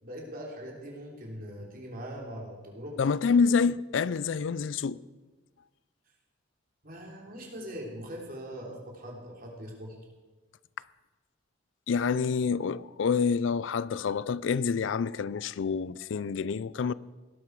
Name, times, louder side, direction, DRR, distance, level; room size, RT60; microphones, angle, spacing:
voice 1, 0.0-3.0 6.8-10.0, equal, 50° right, 3.2 m, -41 dB
voice 2, 3.0-5.0 11.9-16.9, left 5 dB, 80° left, 0.4 m, -27 dB
17.5 x 11.5 x 4.7 m
head